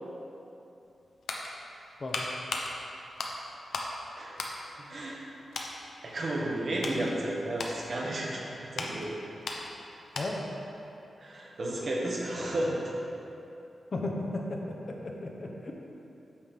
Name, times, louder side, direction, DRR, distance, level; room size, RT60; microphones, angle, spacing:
sound 1, 0.8-4.0 4.3-5.2 5.5-5.8 6.3-10.6 10.9-11.0, left 3 dB, 85° left, 0.8 m, -38 dB
voice 1, 4.8-5.2 6.0-9.2 11.2-12.8, right 1 dB, 45° right, -3 dB, 1.2 m, -33 dB
voice 2, 13.9-14.6 14.9-15.7, left 2 dB, 35° left, 0 dB, 0.8 m, -34 dB
8.6 x 3.6 x 6.1 m, 2.8 s
wide cardioid pair, 160°, 0 cm